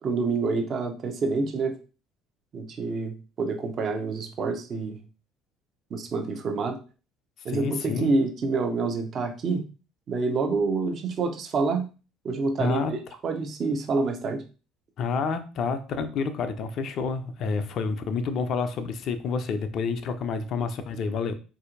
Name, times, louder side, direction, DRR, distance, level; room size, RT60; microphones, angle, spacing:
voice 1, 0.0-1.7 2.5-5.0 5.9-6.8 7.4-9.6 10.1-11.9 12.2-13.0 13.2-14.4, right 3 dB, 40° right, 5 dB, 0.7 m, -27 dB
voice 2, 7.5-8.1 12.6-12.9 15.0-21.3, left 5 dB, 50° left, 9 dB, 0.4 m, -29 dB
4.2 x 2.6 x 2.5 m, 0.33 s
figure-of-eight pair, 55°, 0 cm